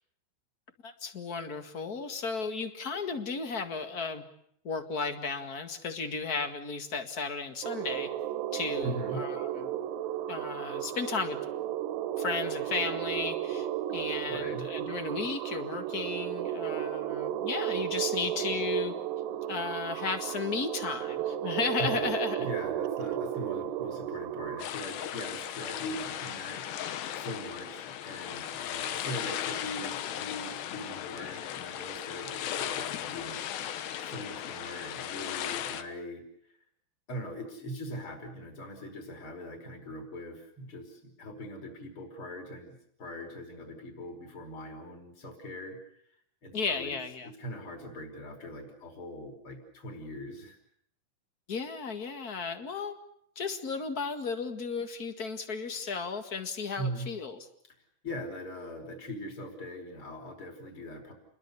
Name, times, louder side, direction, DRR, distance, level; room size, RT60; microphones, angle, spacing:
voice 1, 0.8-4.2 4.6-8.1 8.5-9.8 10.3-11.4 12.2-18.9 19.5-22.5 46.5-47.3 51.5-52.9 53.3-57.5, left 5 dB, 50° left, 8 dB, 1.1 m, -34 dB
sound 1, 7.6-24.6, right 11 dB, 80° right, 3.2 m, -34 dB
voice 2, 8.8-9.2 14.3-14.7 21.8-22.1 22.4-36.2 37.1-45.8 46.4-46.9 47.4-50.6 56.8-57.1 58.0-61.1, equal, 30° left, 4 dB, 5.5 m, -41 dB
sound 2, 24.6-35.8, left 10 dB, 80° left, 3.4 m, -37 dB
29.5 x 22.0 x 6.9 m, 0.71 s
omnidirectional pair, 4.8 m